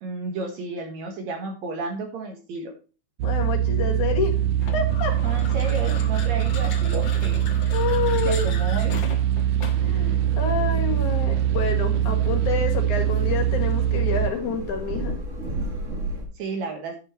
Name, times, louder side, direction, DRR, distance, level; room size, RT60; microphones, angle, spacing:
voice 1, 0.0-2.7 5.2-7.4 8.3-9.0 16.4-16.9, right 3 dB, 65° right, 4 dB, 2.6 m, -32 dB
voice 2, 3.2-4.4 4.7-5.1 6.9-7.1 7.7-8.5 9.8-15.2, left 6 dB, 75° left, 3 dB, 3.1 m, -28 dB
sound 1, 3.2-14.3, right 11 dB, 90° right, 2.3 m, -23 dB
sound 2, 4.6-10.0, left 5 dB, 50° left, 1.6 m, -38 dB
sound 3, 9.7-16.2, right 2 dB, 35° right, 1.4 m, -34 dB
10.5 x 5.5 x 4.2 m, 0.34 s
omnidirectional pair, 3.6 m